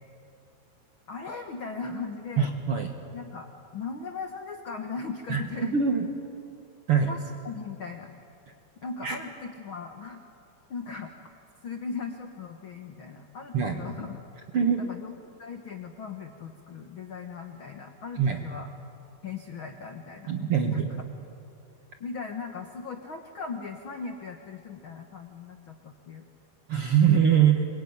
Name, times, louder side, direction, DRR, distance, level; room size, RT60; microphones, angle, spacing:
voice 1, 1.1-2.5 3.1-5.8 7.1-8.1 8.8-10.2 10.7-11.1 11.6-14.2 14.8-15.1 15.4-18.7 19.2-20.8 22.0-26.2, left 5 dB, 65° left, 5 dB, 1.2 m, -38 dB
voice 2, 2.4-2.9 5.3-6.1 6.9-7.1 9.0-9.2 13.5-13.8 14.5-14.9 18.2-18.4 20.3-20.9 26.7-27.7, right 7 dB, 55° right, 4 dB, 1.7 m, -23 dB
27.0 x 22.5 x 9.6 m, 2.6 s
omnidirectional pair, 4.5 m